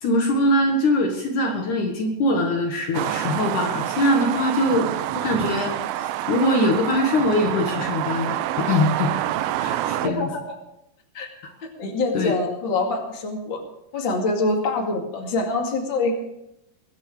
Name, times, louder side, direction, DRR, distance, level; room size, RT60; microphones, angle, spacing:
voice 1, 0.0-5.7 6.0-9.1 9.6-10.3 12.1-12.3, left 1 dB, 65° left, 2 dB, 2.9 m, -22 dB
sound 1, 2.9-10.1, right 13 dB, 85° right, 2.5 m, -27 dB
voice 2, 10.0-10.6 11.1-11.3 11.6-13.6 13.9-16.1, left 3 dB, 35° left, 1 dB, 2.6 m, -25 dB
22.0 x 9.3 x 4.9 m, 0.83 s
omnidirectional pair, 4.1 m